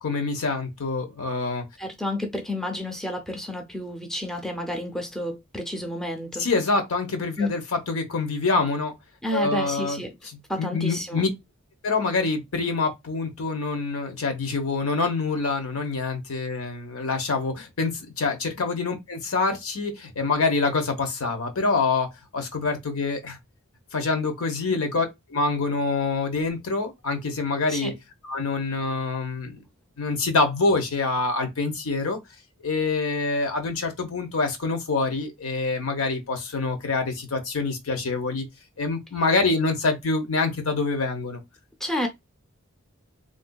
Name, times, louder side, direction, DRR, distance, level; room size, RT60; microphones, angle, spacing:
voice 1, 0.0-1.6 6.4-8.9 9.3-10.0 10.6-11.3 11.8-23.4 23.9-27.9 28.2-29.6 30.0-32.2 32.6-38.4 38.8-41.4, left 3 dB, 80° left, 0.9 m, -26 dB
voice 2, 1.8-6.5 7.4-7.5 9.2-10.1 10.5-11.2 24.7-24.8 27.7-27.9 41.8-42.1, left 1 dB, ahead, 0.5 m, -30 dB
3.5 x 2.6 x 2.2 m
head